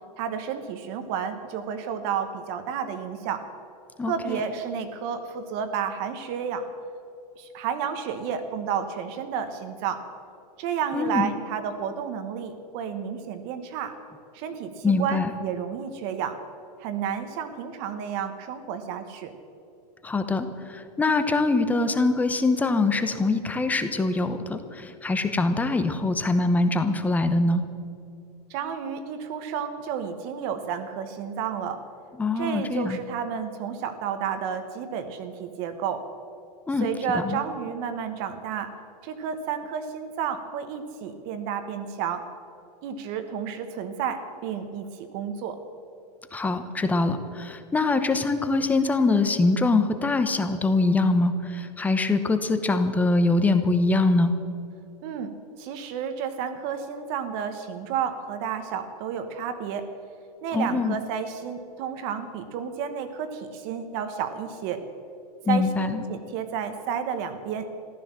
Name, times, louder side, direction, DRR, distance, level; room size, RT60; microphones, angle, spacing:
voice 1, 0.2-3.5 4.0-6.7 7.4-10.0 10.6-13.9 14.3-16.4 16.8-19.3 28.5-31.8 32.4-36.0 36.8-38.7 39.0-42.3 42.8-45.6 55.0-55.3 55.6-59.9 60.4-64.8 65.5-67.7, right 7 dB, 40° right, 8 dB, 1.3 m, -31 dB
voice 2, 4.0-4.4 10.9-11.3 14.8-15.3 20.0-27.6 32.2-33.0 36.7-36.9 37.2-37.4 46.3-54.3 60.5-61.0 65.5-66.0, left 3 dB, 5° left, 9 dB, 0.8 m, -23 dB
14.5 x 12.5 x 7.4 m, 2.6 s
hypercardioid pair, 150°, 21 cm